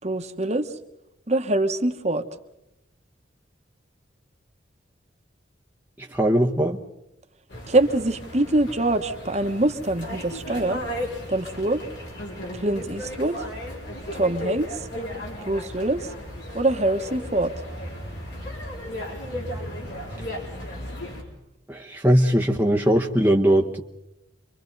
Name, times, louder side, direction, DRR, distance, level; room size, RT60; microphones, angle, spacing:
voice 1, 0.0-0.7 1.3-2.2 7.7-10.8 11.3-11.8 12.5-13.4 14.1-14.7 15.4-16.1 16.5-17.5, right 2 dB, 35° right, 6 dB, 1.2 m, -24 dB
voice 2, 6.0-6.8 21.7-23.8, equal, 10° right, 0 dB, 1.0 m, -20 dB
sound 1, 7.5-21.2, left 1 dB, 70° left, 5.0 m, -35 dB
29.5 x 24.0 x 4.0 m, 0.88 s
head